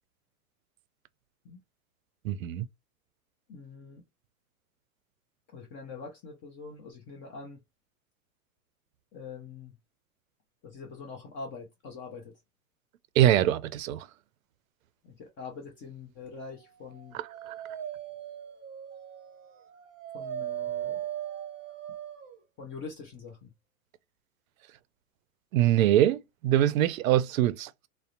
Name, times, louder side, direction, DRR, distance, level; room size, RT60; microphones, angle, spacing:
voice 1, 2.2-2.7 13.2-14.1 17.5-17.6 25.5-27.9, right 12 dB, 70° right, 0.5 m, -23 dB
voice 2, 3.5-4.0 5.5-7.6 9.1-9.7 10.6-12.3 15.0-17.2 20.1-21.1 22.6-23.5, left 4 dB, 30° left, 0.6 m, -44 dB
Dog, 16.8-22.4, right 11 dB, 25° right, 0.8 m, -38 dB
2.7 x 2.0 x 2.4 m
hypercardioid pair, 115°, 43 cm